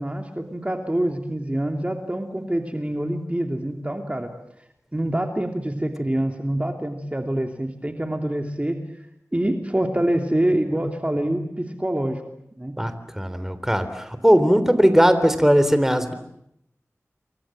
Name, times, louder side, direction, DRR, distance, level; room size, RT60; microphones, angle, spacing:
voice 1, 0.0-4.3 4.9-8.8 9.3-12.2 12.5-12.7, right 1 dB, 25° right, 4 dB, 3.0 m, -25 dB
voice 2, 12.8-16.1, equal, 5° right, 11 dB, 3.6 m, -19 dB
29.0 x 23.5 x 7.7 m, 0.77 s
wide cardioid pair, 40°, 5 cm